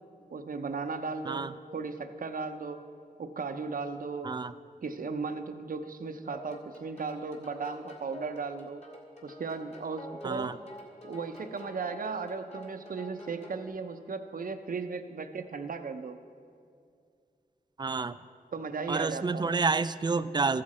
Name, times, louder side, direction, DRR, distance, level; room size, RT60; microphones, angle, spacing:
voice 1, 0.3-1.5 1.7-2.8 3.2-4.3 4.8-8.8 9.2-10.5 11.0-16.2 18.5-19.5, right 4 dB, 60° right, 8 dB, 0.7 m, -36 dB
sound 1, 6.3-13.7, equal, 45° left, 1.9 m, -48 dB
voice 2, 10.2-10.6 17.8-18.2 18.9-20.6, right 4 dB, 25° right, 15 dB, 0.3 m, -29 dB
14.5 x 7.6 x 4.2 m, 2.3 s
cardioid pair, 55°, 16 cm